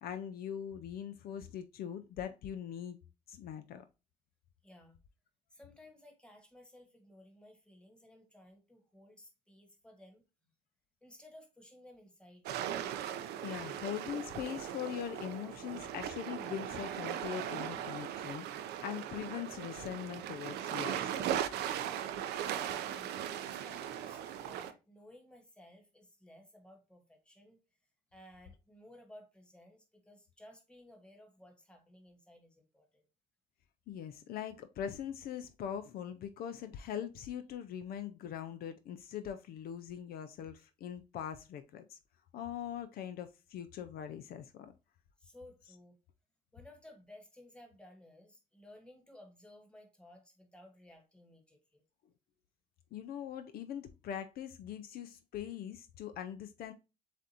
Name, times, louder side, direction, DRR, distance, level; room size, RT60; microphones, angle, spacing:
voice 1, 0.0-3.0 3.3-3.8 13.4-21.5 33.9-42.0 42.3-44.7 52.9-56.7, left 9 dB, 65° left, 0.5 m, -42 dB
voice 2, 4.6-5.0 5.5-10.5 11.0-12.5 21.5-21.7 22.3-27.6 28.1-33.1 44.6-44.7 45.2-46.0 46.5-51.8, left 1 dB, 5° left, 1.4 m, -57 dB
sound 1, 12.4-24.7, right 10 dB, 75° right, 0.5 m, -38 dB
7.3 x 2.6 x 2.8 m
cardioid pair, 110°, 17 cm